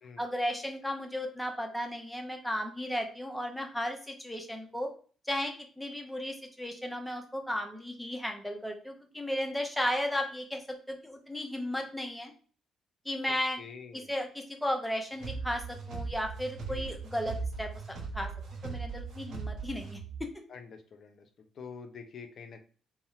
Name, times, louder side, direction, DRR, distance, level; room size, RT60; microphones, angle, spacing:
voice 1, 0.2-4.9 5.3-12.3 13.0-13.6 13.9-17.7 18.1-18.3 18.6-20.3, left 1 dB, 5° left, 3 dB, 0.6 m, -35 dB
voice 2, 13.3-14.1 16.7-17.0 20.5-22.6, left 5 dB, 50° left, 6 dB, 0.4 m, -47 dB
sound 1, 15.2-20.3, right 4 dB, 55° right, 0.6 m, -39 dB
2.7 x 2.0 x 2.5 m, 0.40 s
figure-of-eight pair, 45°, 0 cm